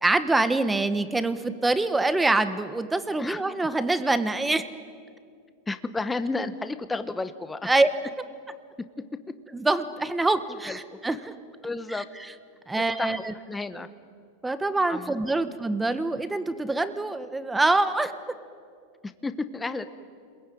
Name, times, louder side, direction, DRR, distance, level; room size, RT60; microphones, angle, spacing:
voice 1, 0.0-4.6 7.6-7.9 9.5-11.3 12.7-13.3 14.4-18.1, right 2 dB, 10° right, 11 dB, 1.3 m, -25 dB
voice 2, 5.7-7.7 8.8-8.9 10.5-10.8 11.6-12.1 12.8-13.9 14.9-15.5 19.0-19.9, left 3 dB, 10° left, 11 dB, 1.1 m, -32 dB
28.5 x 21.5 x 9.4 m, 2.2 s
supercardioid pair, 135°, 0 cm